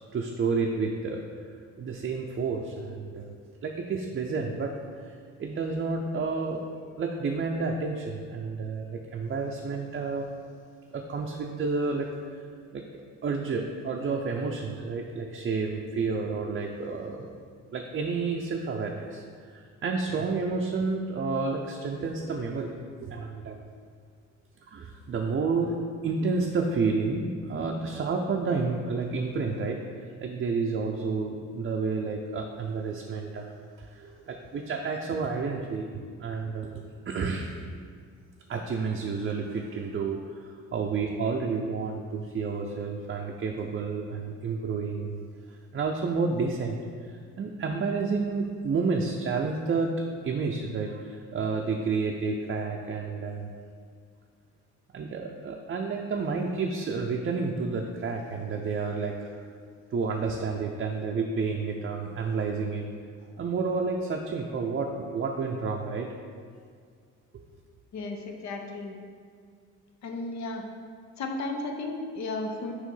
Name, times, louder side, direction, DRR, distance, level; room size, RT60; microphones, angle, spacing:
voice 1, 0.1-1.2 1.8-3.3 3.6-6.6 7.0-10.3 10.9-12.1 12.7-17.3 17.7-23.7 24.6-25.8 26.0-29.8 30.2-37.5 38.5-45.2 45.5-49.9 50.2-53.5 54.9-59.3 59.9-62.9 63.4-66.1, right 4 dB, 40° right, 1 dB, 0.5 m, -30 dB
voice 2, 67.9-69.0 70.0-70.7 71.2-72.7, left 2 dB, 65° left, 3 dB, 0.9 m, -34 dB
6.3 x 3.1 x 5.4 m, 2.1 s
cardioid pair, 90°, 30 cm